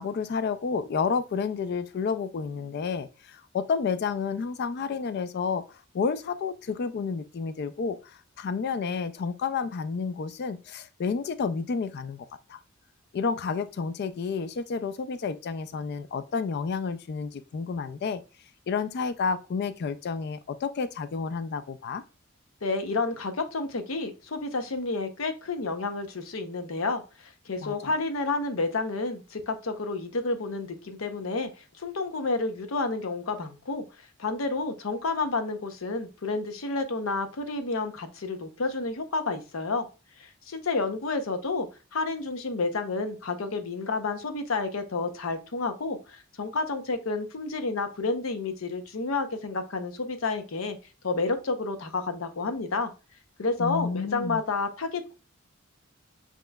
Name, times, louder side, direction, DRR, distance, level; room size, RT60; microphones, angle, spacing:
voice 1, 0.0-12.6 13.1-18.2 18.7-22.0 27.6-27.9 53.6-54.4, left 5 dB, 50° left, 0.3 m, -30 dB
voice 2, 22.6-31.5 31.8-33.8 34.2-39.8 40.2-50.8 51.0-52.9 53.4-55.2, left 3 dB, 75° left, 0.7 m, -30 dB
7.6 x 3.0 x 2.3 m
head